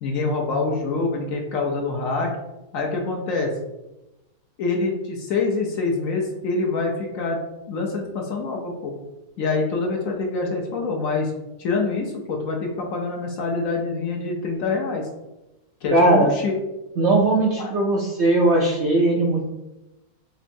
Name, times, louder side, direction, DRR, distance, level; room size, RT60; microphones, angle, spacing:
voice 1, 0.0-2.4 2.7-3.5 4.6-7.4 7.7-8.9 9.4-11.3 11.6-15.0 15.8-16.5 17.6-17.7, left 3 dB, 65° left, 0 dB, 0.9 m, -25 dB
voice 2, 15.9-16.3 17.0-19.4, right 2 dB, 65° right, -2 dB, 0.7 m, -19 dB
4.3 x 2.9 x 2.6 m, 0.98 s
omnidirectional pair, 1.7 m